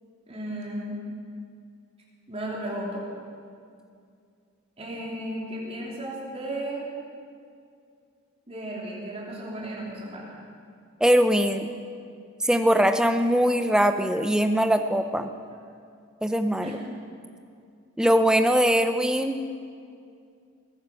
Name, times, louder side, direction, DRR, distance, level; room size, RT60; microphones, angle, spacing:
voice 1, 0.3-1.0 2.3-3.1 4.8-6.8 8.5-10.3 16.6-16.7, right 1 dB, 25° right, -4 dB, 3.3 m, -34 dB
voice 2, 11.0-11.7 12.4-15.3 16.2-16.7 18.0-19.4, equal, 5° right, 8 dB, 0.5 m, -21 dB
21.0 x 9.4 x 6.4 m, 2.4 s
head